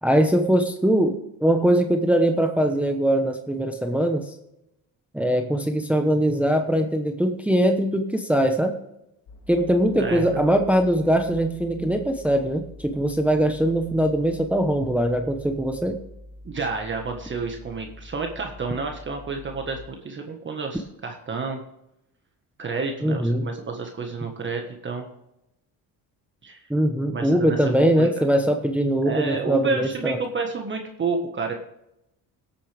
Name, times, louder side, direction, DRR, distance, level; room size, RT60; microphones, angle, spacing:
voice 1, 0.0-4.3 5.1-8.7 9.5-16.0 23.0-23.5 26.7-30.2, right 1 dB, 5° right, 5 dB, 0.9 m, -21 dB
sound 1, 9.3-19.8, left 1 dB, 75° left, 2.9 m, -45 dB
voice 2, 10.0-10.4 16.4-21.6 22.6-25.0 26.4-26.6 27.1-28.1 29.0-31.5, right 4 dB, 30° right, 3 dB, 1.5 m, -30 dB
18.0 x 8.6 x 3.5 m, 0.84 s
cardioid pair, 130°, 39 cm